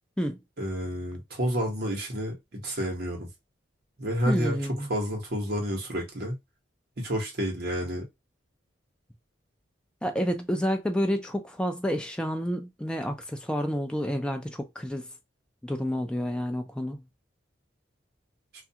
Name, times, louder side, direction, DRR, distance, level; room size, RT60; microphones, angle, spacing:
voice 1, 0.6-3.3 4.0-4.6 4.9-6.4 7.0-8.1, equal, 55° right, 1.0 m, -30 dB
voice 2, 4.3-4.9 10.0-15.1 15.6-17.0, equal, 5° left, 0.3 m, -29 dB
2.4 x 2.2 x 2.7 m
head